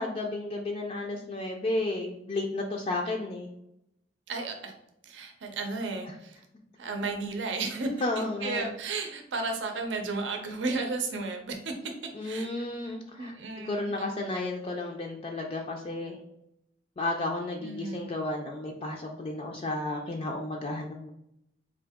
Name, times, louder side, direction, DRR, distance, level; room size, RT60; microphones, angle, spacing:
voice 1, 0.0-3.5 6.1-6.2 8.0-8.7 12.1-16.2 17.0-21.1, left 2 dB, 35° left, 1 dB, 0.4 m, -33 dB
voice 2, 4.3-4.7 5.0-6.4 6.8-11.7 12.2-12.7 13.2-14.1 14.3-14.4 17.6-18.1, right 3 dB, 80° right, 4 dB, 0.6 m, -34 dB
3.8 x 2.7 x 3.5 m, 0.79 s
head